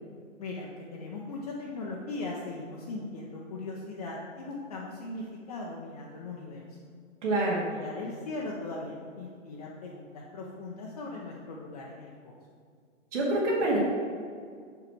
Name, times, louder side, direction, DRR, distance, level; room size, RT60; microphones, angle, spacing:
voice 1, 0.4-6.8 7.7-12.3, left 2 dB, 30° left, -3 dB, 0.7 m, -39 dB
voice 2, 7.2-7.6 13.1-13.8, right 2 dB, 65° right, -5 dB, 2.1 m, -26 dB
6.8 x 4.7 x 5.9 m, 2.1 s
hypercardioid pair, 160°, 39 cm